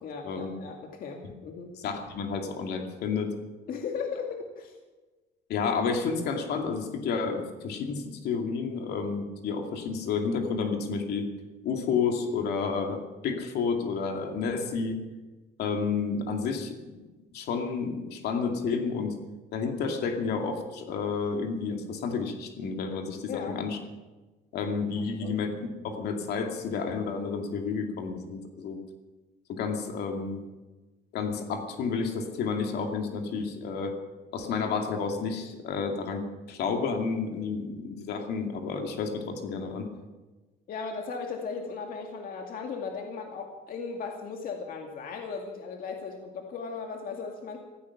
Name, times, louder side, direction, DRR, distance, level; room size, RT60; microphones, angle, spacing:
voice 1, 0.0-1.7 3.7-4.7 23.3-23.6 25.2-25.4 40.7-47.6, left 5 dB, 60° left, 2 dB, 2.2 m, -37 dB
voice 2, 1.8-3.3 5.5-11.3 11.6-15.0 15.6-17.0 17.3-19.2 19.5-23.8 24.5-25.5 25.8-28.8 29.5-30.4 31.1-33.9 34.3-39.9, left 5 dB, 75° left, 4 dB, 2.5 m, -30 dB
15.0 x 15.0 x 6.0 m, 1.2 s
cardioid pair, 110°, 17 cm